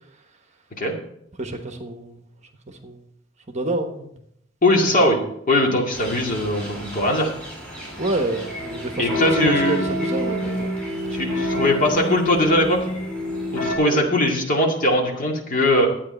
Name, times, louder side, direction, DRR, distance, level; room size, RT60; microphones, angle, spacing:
voice 1, 1.4-2.2 2.7-3.0 3.5-4.1 8.0-10.7 11.1-11.4 13.8-14.1, right 2 dB, 35° right, 5 dB, 1.2 m, -28 dB
voice 2, 4.6-7.3 9.0-9.8 11.1-12.8 13.5-15.9, left 1 dB, 45° left, 0 dB, 2.2 m, -20 dB
sound 1, 5.9-13.8, equal, 5° left, 4.0 m, -28 dB
11.5 x 8.8 x 4.4 m, 0.74 s
head